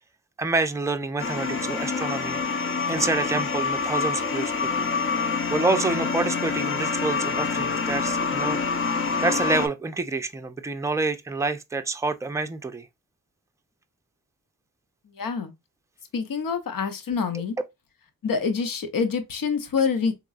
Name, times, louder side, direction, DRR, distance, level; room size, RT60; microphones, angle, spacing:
voice 1, 0.4-2.6 2.9-4.9 5.5-8.6 8.9-12.9 17.3-17.4, right 3 dB, 10° right, 0.5 m, -28 dB
sound 1, 1.2-9.7, left 4 dB, 35° left, 0.6 m, -26 dB
voice 2, 15.1-15.5 16.1-17.6 18.2-20.1, left 5 dB, 70° left, 0.8 m, -26 dB
3.7 x 3.0 x 2.3 m
cardioid pair, 50°, 35 cm